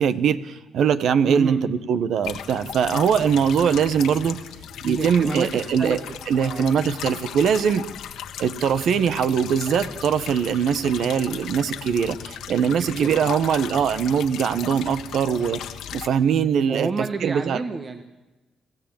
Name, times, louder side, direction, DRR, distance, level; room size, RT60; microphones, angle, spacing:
voice 1, 0.0-4.4 4.8-6.0 6.3-7.9 8.4-15.6 15.9-16.9 17.2-17.6, right 7 dB, 70° right, 13 dB, 1.3 m, -22 dB
voice 2, 1.3-1.6 4.8-6.7 12.8-13.4 16.7-18.0, right 4 dB, 40° right, 8 dB, 1.5 m, -30 dB
sound 1, 2.2-16.1, left 9 dB, 80° left, 1.5 m, -36 dB
27.5 x 15.0 x 9.0 m, 1.1 s
cardioid pair, 90°, 0 cm